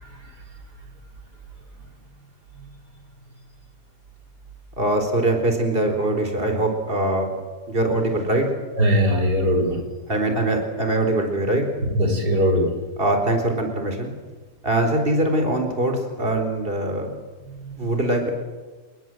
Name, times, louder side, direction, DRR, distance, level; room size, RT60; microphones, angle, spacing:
voice 1, 4.8-7.3 7.7-8.5 10.1-11.6 13.0-14.1 14.6-17.1 17.8-18.3, right 1 dB, 35° right, 4 dB, 4.4 m, -22 dB
voice 2, 8.8-9.8 12.0-12.7 17.6-17.9, equal, 90° right, 2 dB, 4.7 m, -20 dB
28.5 x 21.0 x 7.8 m, 1.3 s
omnidirectional pair, 1.7 m